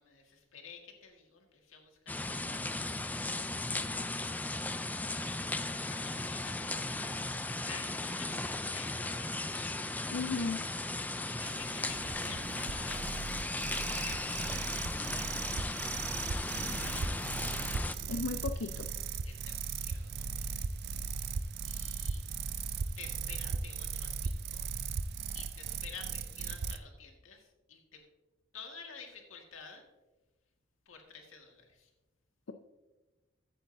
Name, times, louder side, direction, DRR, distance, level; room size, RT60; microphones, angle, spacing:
voice 1, 0.0-3.5 3.8-5.4 5.8-9.7 11.2-13.1 14.0-15.3 16.6-17.5 19.2-20.7 21.6-22.2 23.0-24.7 25.3-28.0 28.5-29.8 30.9-31.9, left 5 dB, 90° left, 2 dB, 1.8 m, -51 dB
sound 1, 2.1-18.0, left 2 dB, 10° left, 0.3 m, -36 dB
voice 2, 10.1-10.6 18.1-18.9, left 4 dB, 70° left, 6 dB, 0.5 m, -35 dB
sound 2, 11.4-26.8, right 5 dB, 55° right, 0.4 m, -37 dB
14.0 x 8.6 x 2.7 m, 1.1 s
head